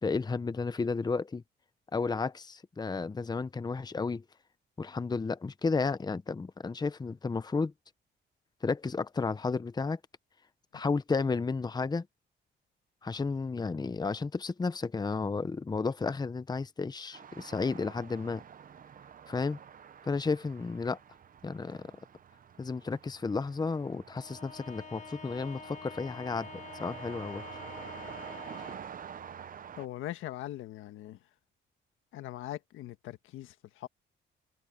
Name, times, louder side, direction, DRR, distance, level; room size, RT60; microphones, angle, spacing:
voice 1, 0.0-1.4 1.9-4.2 4.8-7.7 8.6-10.0 10.7-12.1 13.0-18.4 19.3-19.6 20.0-21.0 21.4-21.9 22.6-27.4, left 4 dB, 20° left, 0.8 m, -32 dB
sound 1, 17.1-29.9, right 8 dB, 45° right, 0.8 m, -48 dB
Bowed string instrument, 24.1-29.0, left 5 dB, 40° left, 2.1 m, -47 dB
voice 2, 29.8-31.2 32.1-33.9, left 14 dB, 90° left, 1.5 m, -41 dB
cardioid pair, 90°, 20 cm